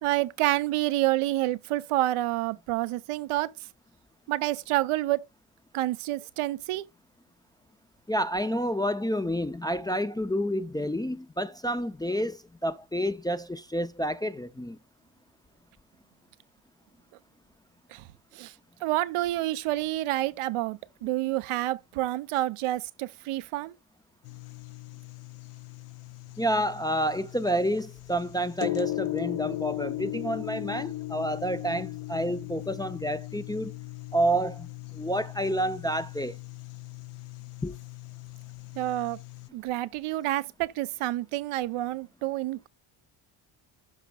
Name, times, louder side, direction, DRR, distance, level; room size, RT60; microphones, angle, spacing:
voice 1, 0.0-3.5 4.3-5.2 5.7-6.8 17.9-18.0 18.3-18.5 18.8-23.7 38.8-39.2 39.5-42.7, right 16 dB, 90° right, 0.6 m, -28 dB
voice 2, 8.1-14.8 26.4-33.8 34.1-34.7 34.9-36.4 37.6-37.8, equal, 10° left, 0.3 m, -29 dB
sound 1, 24.2-39.5, left 17 dB, 80° left, 0.7 m, -38 dB
12.0 x 5.0 x 2.2 m
cardioid pair, 90°, 49 cm